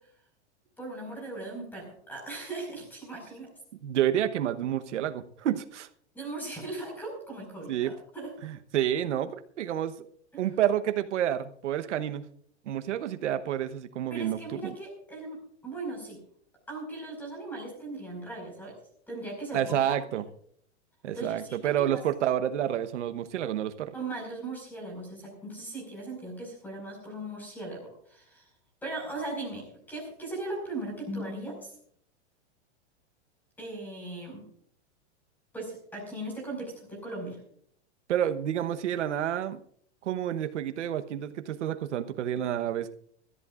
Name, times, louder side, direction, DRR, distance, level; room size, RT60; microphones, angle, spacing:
voice 1, 0.8-3.5 6.1-8.3 10.3-10.4 14.1-16.2 16.7-18.8 19.1-20.0 21.1-22.0 23.9-28.4 28.8-31.7 33.6-34.4 35.5-37.4, right 2 dB, 5° left, 1 dB, 5.1 m, -38 dB
voice 2, 3.8-5.9 7.7-7.9 8.4-9.9 10.4-12.2 12.7-14.7 19.5-20.2 21.0-23.9 38.1-39.6 40.0-42.9, right 10 dB, 85° right, 9 dB, 1.1 m, -29 dB
24.0 x 14.0 x 2.5 m, 0.62 s
supercardioid pair, 175°, 35 cm